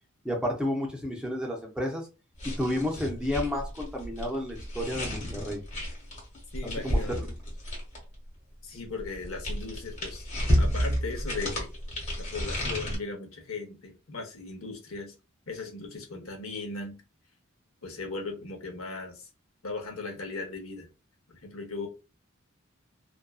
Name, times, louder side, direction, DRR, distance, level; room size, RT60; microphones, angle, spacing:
voice 1, 0.2-2.0 2.4-5.6 6.8-7.3, left 1 dB, 5° right, 0 dB, 0.5 m, -31 dB
sound 1, 2.4-8.1 9.0-13.0, equal, 35° left, 1.1 m, -31 dB
voice 2, 6.5-7.2 8.6-10.3 10.5-11.7 12.2-15.1 15.5-17.0 17.8-19.3 19.6-20.9 21.3-21.9, left 3 dB, 75° left, 2 dB, 0.8 m, -38 dB
2.5 x 2.2 x 2.3 m, 0.29 s
head